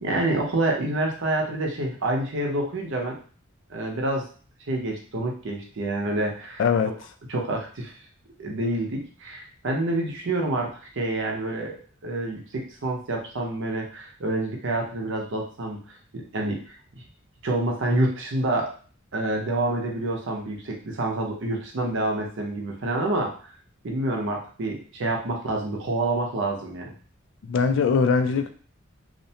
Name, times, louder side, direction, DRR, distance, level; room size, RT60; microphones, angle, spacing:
voice 1, 0.0-3.2 3.7-4.3 4.7-6.6 7.3-7.9 8.4-15.8 16.1-16.6 17.4-18.7 19.1-23.5 23.8-26.9, right 2 dB, 65° right, 1 dB, 0.6 m, -27 dB
voice 2, 6.6-6.9 27.5-28.5, left 5 dB, 65° left, 8 dB, 0.3 m, -21 dB
2.5 x 2.1 x 2.7 m, 0.41 s
head